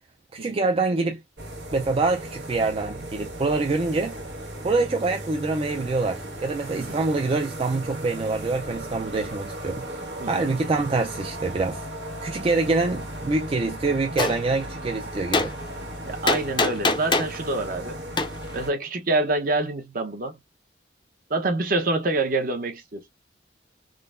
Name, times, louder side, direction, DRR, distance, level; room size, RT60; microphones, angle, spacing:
voice 1, 0.3-1.2 1.7-4.2 4.6-9.8 10.3-11.9 12.2-15.5, right 3 dB, 30° right, 0.3 m, -25 dB
sound 1, 1.4-18.7, right 1 dB, 90° right, 1.4 m, -36 dB
Gunshot gunfire, 14.2-14.4 15.3-15.5 16.3-17.4 18.2-18.3, left 3 dB, 25° left, 0.5 m, -22 dB
voice 2, 16.0-18.0 18.5-20.3 21.3-23.0, right 2 dB, 50° right, 0.8 m, -26 dB
3.7 x 2.1 x 2.4 m
head